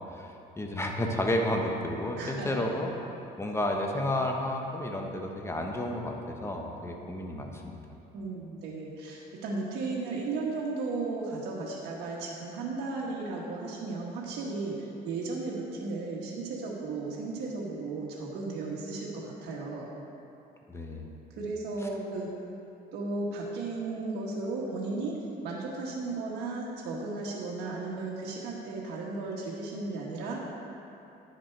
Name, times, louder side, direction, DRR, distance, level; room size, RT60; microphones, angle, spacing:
voice 1, 0.0-2.9 3.4-7.8 20.7-21.1, left 1 dB, 15° left, 1 dB, 1.0 m, -31 dB
voice 2, 2.2-2.6 8.1-19.9 21.4-22.3 22.9-30.4, right 3 dB, 80° right, -4 dB, 1.4 m, -35 dB
10.5 x 6.5 x 4.6 m, 2.8 s
cardioid pair, 110°, 17 cm